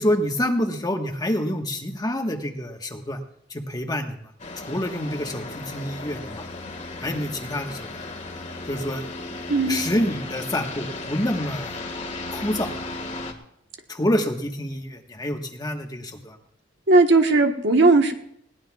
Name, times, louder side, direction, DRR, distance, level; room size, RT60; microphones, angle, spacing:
voice 1, 0.0-3.2 3.5-4.1 4.7-6.4 7.0-8.0 8.7-9.0 9.6-11.8 12.3-12.7 13.9-16.4, left 1 dB, 20° left, 3 dB, 1.4 m, -27 dB
sound 1, 4.4-13.3, left 2 dB, 40° left, 1.8 m, -35 dB
voice 2, 9.5-9.8 16.9-18.1, right 3 dB, 60° right, 4 dB, 1.3 m, -17 dB
21.0 x 18.0 x 2.4 m, 0.72 s
head